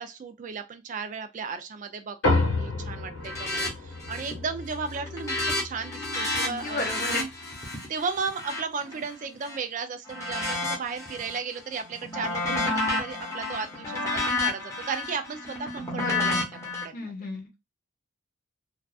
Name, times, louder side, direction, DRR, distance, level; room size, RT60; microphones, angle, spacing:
voice 1, 0.0-5.4 5.6-7.3 7.9-12.6 13.0-16.4 16.8-17.1, right 5 dB, 40° right, 0.3 m, -35 dB
sound 1, 2.2-7.0, left 2 dB, 90° left, 1.1 m, -30 dB
sound 2, 3.2-3.7 4.0-4.4 4.7-9.6 10.1-11.4 11.8-16.8, left 2 dB, 15° left, 0.9 m, -31 dB
voice 2, 6.4-7.3 12.4-12.9 15.9-16.4 16.9-17.6, left 2 dB, 45° left, 0.8 m, -34 dB
2.4 x 2.3 x 2.3 m
head